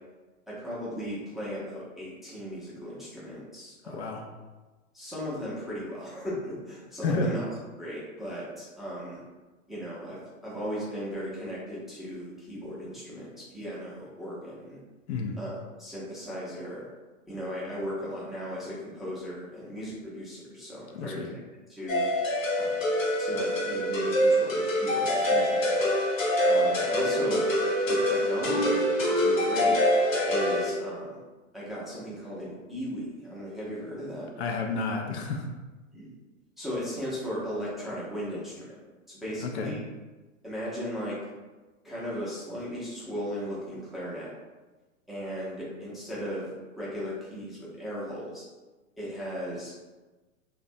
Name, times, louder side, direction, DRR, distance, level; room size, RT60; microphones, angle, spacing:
voice 1, 0.5-4.1 4.9-7.5 7.8-9.2 9.7-14.8 15.4-16.9 17.3-21.4 21.7-22.1 22.6-22.8 23.2-25.8 26.5-27.4 27.9-29.8 30.3-31.2 31.5-34.3 35.9-36.2 36.6-38.7 39.1-39.8 40.4-41.2 41.8-44.3 45.1-46.5 46.7-48.4 49.0-49.7, equal, ahead, -8 dB, 0.5 m, -36 dB
voice 2, 3.9-4.2 7.0-7.3 15.1-15.4 20.9-21.3 34.4-35.5 39.4-39.7, left 3 dB, 60° left, 2 dB, 0.5 m, -30 dB
sound 1, 21.9-30.7, equal, 85° left, 0.8 m, -25 dB
2.5 x 2.2 x 2.6 m, 1.2 s
hypercardioid pair, 105°, 39 cm